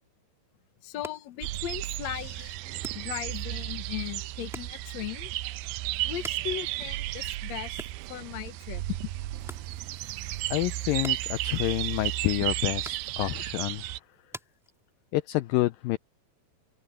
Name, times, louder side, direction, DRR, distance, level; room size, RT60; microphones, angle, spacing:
voice 1, 0.8-5.3 6.0-7.8 8.1-9.1, left 13 dB, 65° left, 1.9 m, -37 dB
sound 1, 0.8-15.3, equal, ahead, 2.9 m, -50 dB
sound 2, 1.4-14.0, right 17 dB, 85° right, 2.5 m, -33 dB
sound 3, 9.2-14.2, right 6 dB, 40° right, 3.2 m, -58 dB
voice 2, 10.5-13.9 15.1-16.0, left 18 dB, 80° left, 2.0 m, -28 dB
omnidirectional pair, 4.7 m